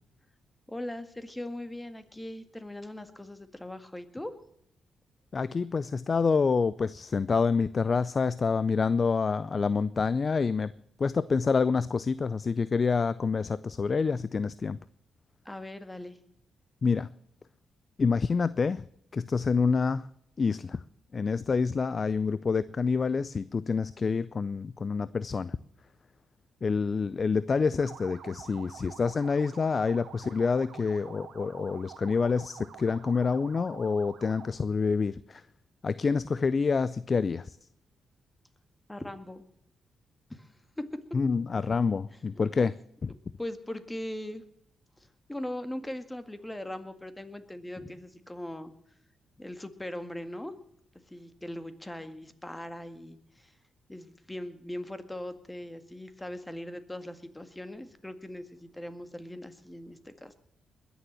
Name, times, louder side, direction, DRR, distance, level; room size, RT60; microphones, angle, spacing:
voice 1, 0.7-4.3 15.5-16.2 38.9-39.5 40.3-40.9 42.1-42.8 43.4-44.4 45.3-48.7 49.4-50.5 51.1-53.5 53.9-60.3, left 1 dB, 15° left, 10 dB, 1.9 m, -40 dB
voice 2, 5.3-10.7 11.0-14.8 16.8-17.1 18.0-18.8 19.1-20.1 20.4-20.8 21.1-25.6 26.6-35.4 35.8-37.5 41.1-42.8 43.0-43.1, left 5 dB, 45° left, 17 dB, 0.5 m, -27 dB
sound 1, 27.8-34.6, right 8 dB, 70° right, 1.6 m, -48 dB
21.0 x 7.1 x 7.5 m, 0.72 s
supercardioid pair, 45°, 0 cm